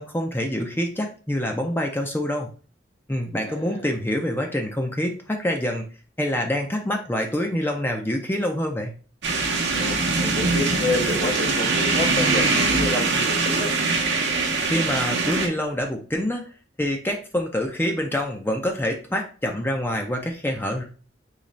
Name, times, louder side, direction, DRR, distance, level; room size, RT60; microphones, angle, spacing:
voice 1, 0.0-2.5 3.1-5.8 6.2-8.9 14.7-16.5 16.8-20.8, left 1 dB, 10° left, 2 dB, 0.5 m, -26 dB
voice 2, 3.4-3.9 9.7-13.7, left 2 dB, 85° left, -2 dB, 1.7 m, -29 dB
sound 1, 9.2-15.5, right 3 dB, 70° right, 0.8 m, -22 dB
3.9 x 3.1 x 3.1 m, 0.38 s
head